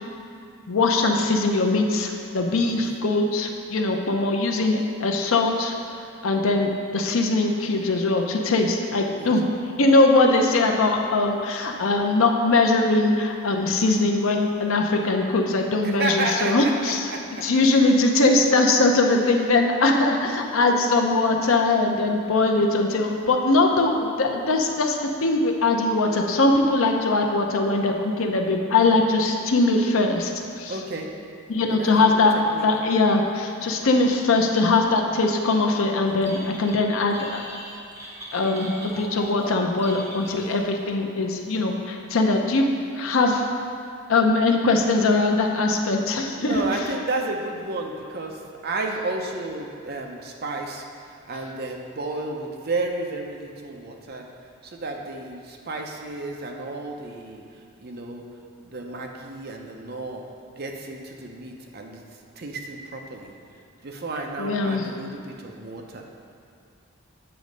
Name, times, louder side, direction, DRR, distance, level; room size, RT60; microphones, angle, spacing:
voice 1, 0.7-5.7 6.2-9.4 9.8-17.1 17.4-30.3 30.6-30.7 31.5-32.3 32.6-37.4 38.3-42.7 42.9-43.5 44.1-46.6 64.4-64.9, left 2 dB, 70° left, 2 dB, 0.6 m, -21 dB
voice 2, 15.8-17.4 20.3-20.5 30.7-31.1 31.7-32.1 32.5-32.7 46.4-54.2 54.6-58.2 58.6-60.2 60.6-62.0 62.4-63.3 63.8-66.0, right 2 dB, 45° right, 2 dB, 0.6 m, -32 dB
Telephone, 36.1-36.8 37.1-40.8, equal, 15° right, 1.0 m, -40 dB
7.7 x 3.1 x 5.2 m, 2.5 s
head